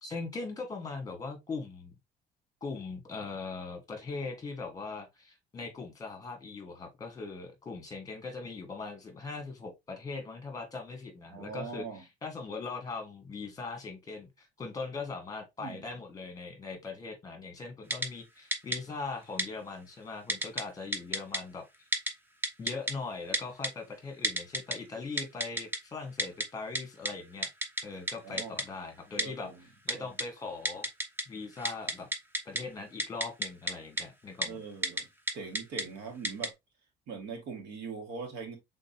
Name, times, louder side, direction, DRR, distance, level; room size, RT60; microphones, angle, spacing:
voice 1, 0.0-1.9 2.6-21.6 22.6-27.5 27.8-29.5 29.8-30.9 31.3-32.1 32.4-34.6, left 4 dB, 20° left, 1.5 m, -40 dB
voice 2, 11.3-12.0 15.6-15.9 28.2-28.6 29.2-29.6 29.9-30.1 34.4-35.0 35.3-36.5 37.1-38.6, right 5 dB, 85° right, 1.9 m, -41 dB
Typing, 17.9-18.1 18.5-18.8 19.4-19.5 20.3-20.6 20.9-21.4 21.9-22.1 22.4-22.9 23.3-23.7 24.2-24.8 25.2-25.8 26.2-26.5 26.8-26.9 27.1-27.2 27.4-27.8 28.1-28.2 28.4-28.6 29.2-29.3 29.9-30.2 30.7-31.2 31.5-32.6 33.0-33.7 34.0-34.1 34.4-34.5 34.8-35.0 35.3-35.8 36.2-36.5, right 1 dB, 10° right, 0.7 m, -30 dB
5.1 x 3.8 x 2.7 m
cardioid pair, 150°, 17 cm